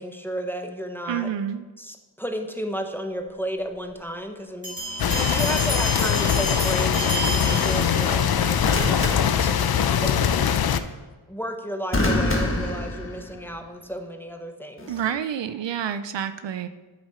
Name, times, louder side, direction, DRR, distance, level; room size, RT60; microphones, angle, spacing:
voice 1, 0.0-1.3 1.8-10.6 11.3-15.0, equal, 5° left, 4 dB, 0.8 m, -33 dB
voice 2, 1.1-1.6 14.9-16.7, right 9 dB, 65° right, 12 dB, 0.5 m, -28 dB
sound 1, 4.6-8.4, right 1 dB, 15° right, 2.9 m, -31 dB
sound 2, 4.8-5.1 8.6-10.1 11.9-13.6 14.8-15.1, left 1 dB, 25° left, 1.4 m, -27 dB
sound 3, 5.0-10.8, left 8 dB, 55° left, 0.5 m, -22 dB
7.9 x 7.2 x 4.4 m, 1.3 s
wide cardioid pair, 90°, 47 cm